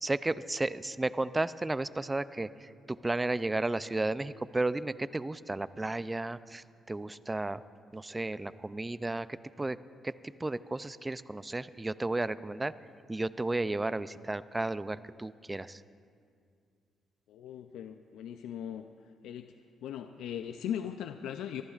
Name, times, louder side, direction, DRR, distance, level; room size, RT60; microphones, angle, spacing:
voice 1, 0.0-7.6 7.9-9.8 10.0-10.1 10.4-12.7 13.1-15.8, right 2 dB, 15° right, 15 dB, 0.4 m, -33 dB
voice 2, 17.3-18.9 19.2-19.5 19.8-21.6, left 9 dB, 85° left, 8 dB, 0.4 m, -39 dB
23.5 x 14.5 x 2.4 m, 2.2 s
cardioid pair, 90°, 0 cm